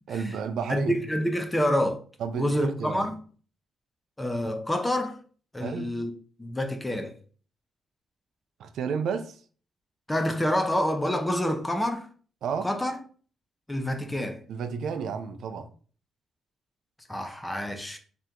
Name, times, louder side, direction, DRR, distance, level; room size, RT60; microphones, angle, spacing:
voice 1, 0.1-1.0 2.2-3.0 5.6-5.9 8.6-9.4 12.4-12.7 14.5-15.7, right 6 dB, 65° right, 0.4 m, -31 dB
voice 2, 0.7-2.0 2.3-3.2 4.2-5.2 5.5-6.1 6.4-7.1 10.1-12.1 12.6-13.0 13.7-14.4 17.1-18.0, equal, 10° left, 0.4 m, -27 dB
3.3 x 2.8 x 3.7 m
cardioid pair, 165°, 0 cm